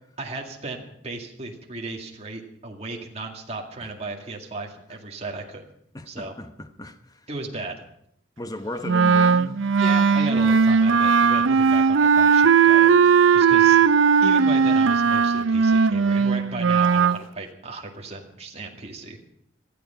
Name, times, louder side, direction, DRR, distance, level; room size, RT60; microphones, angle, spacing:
voice 1, 0.2-5.7 6.1-6.3 7.3-7.8 9.8-12.9 13.3-19.2, right 2 dB, 35° right, 2.2 m, -35 dB
voice 2, 5.9-7.2 8.4-9.6 13.0-13.1, left 1 dB, 20° left, 1.0 m, -35 dB
Wind instrument woodwind instrument, 8.9-17.2, right 6 dB, 80° right, 0.5 m, -18 dB
19.5 x 13.0 x 5.8 m
head